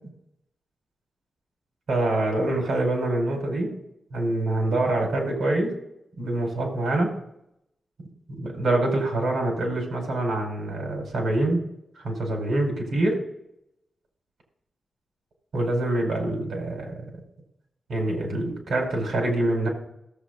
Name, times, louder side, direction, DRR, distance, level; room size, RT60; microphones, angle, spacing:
voice 1, 1.9-3.8 4.1-5.7 6.2-7.2 8.4-11.6 12.0-13.2 15.5-17.0 17.9-19.7, right 2 dB, 75° right, 1 dB, 5.1 m, -25 dB
17.5 x 8.1 x 3.9 m, 0.79 s
wide cardioid pair, 175°, 0 cm